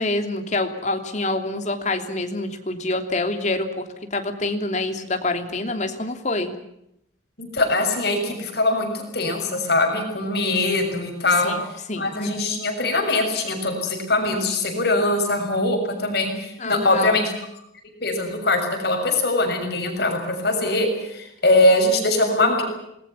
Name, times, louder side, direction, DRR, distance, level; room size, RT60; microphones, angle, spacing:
voice 1, 0.0-6.5 11.4-11.6 11.9-12.3 16.6-17.2, left 2 dB, 40° left, 6 dB, 3.0 m, -26 dB
voice 2, 7.4-11.5 11.9-17.3 18.0-22.6, left 2 dB, 60° left, 4 dB, 6.7 m, -22 dB
27.0 x 20.5 x 7.2 m, 0.79 s
head